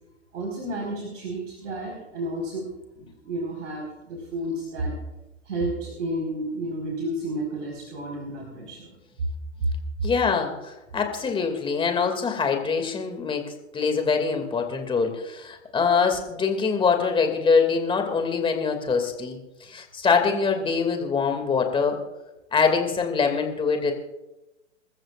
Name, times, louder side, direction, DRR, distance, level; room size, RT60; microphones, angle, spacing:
voice 1, 0.3-2.7 2.9-5.0 5.4-8.9, right 1 dB, 70° right, -1 dB, 4.8 m, -31 dB
voice 2, 10.0-22.0 22.5-23.9, left 5 dB, 15° left, 4 dB, 2.5 m, -24 dB
28.0 x 14.0 x 2.5 m, 1.0 s
hypercardioid pair, 120°, 38 cm